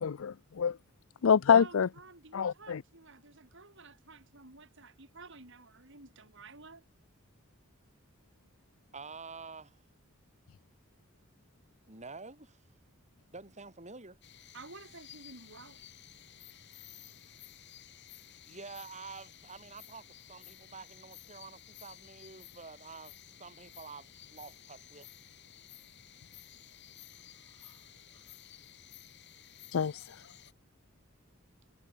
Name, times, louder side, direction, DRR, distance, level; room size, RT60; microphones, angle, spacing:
voice 1, 0.0-0.8 1.2-1.9 2.3-2.8 29.7-30.0, left 7 dB, 75° left, 0.5 m, -26 dB
voice 2, 1.5-6.8 14.5-15.9 27.1-27.9 28.1-28.4, right 3 dB, 65° right, 6.7 m, -52 dB
voice 3, 8.9-9.8 11.9-12.6 13.3-14.2 18.5-25.1, right 4 dB, 35° right, 6.1 m, -48 dB
sound 1, 14.2-30.5, left 11 dB, 55° left, 2.9 m, -54 dB
head